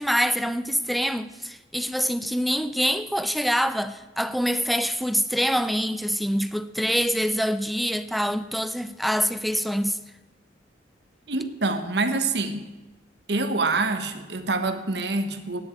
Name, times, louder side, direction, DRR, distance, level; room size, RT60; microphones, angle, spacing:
voice 1, 0.0-10.0, equal, ahead, 0.4 m, -25 dB
voice 2, 11.3-12.7 13.3-15.6, right 3 dB, 65° right, 1.1 m, -26 dB
9.8 x 8.3 x 9.0 m
head